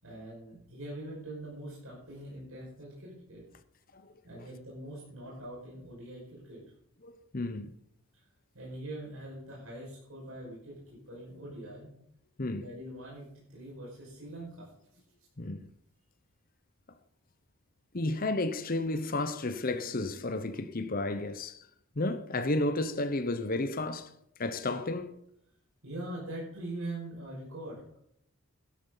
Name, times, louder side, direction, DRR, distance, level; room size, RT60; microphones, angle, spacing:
voice 1, 0.0-3.4 4.2-6.6 8.5-10.7 11.1-11.9 12.5-14.7 25.8-28.0, right 1 dB, 75° right, 5.5 m, -43 dB
voice 2, 7.0-7.7 12.4-12.7 15.4-15.7 17.9-21.6 22.0-24.1 24.4-25.2, left 2 dB, 40° left, 0.8 m, -32 dB
12.0 x 12.0 x 4.0 m
head